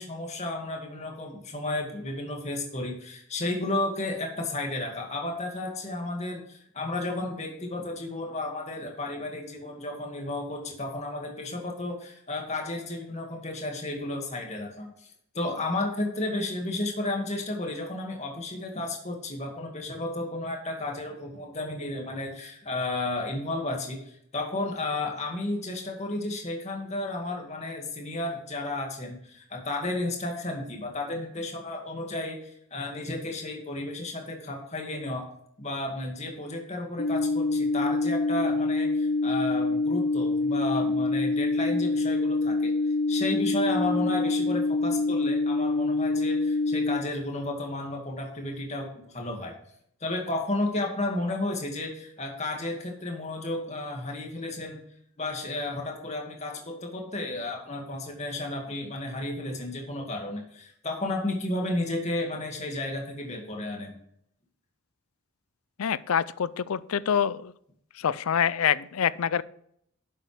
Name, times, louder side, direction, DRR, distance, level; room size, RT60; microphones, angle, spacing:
voice 1, 0.0-35.3 35.6-49.5 50.0-54.8 55.2-63.9, left 2 dB, 30° left, 1 dB, 2.1 m, -33 dB
sound 1, 37.0-47.0, left 3 dB, 55° left, 0.9 m, -26 dB
voice 2, 65.8-67.5 68.0-69.4, left 8 dB, 90° left, 18 dB, 0.5 m, -26 dB
11.0 x 7.9 x 3.4 m, 0.69 s
head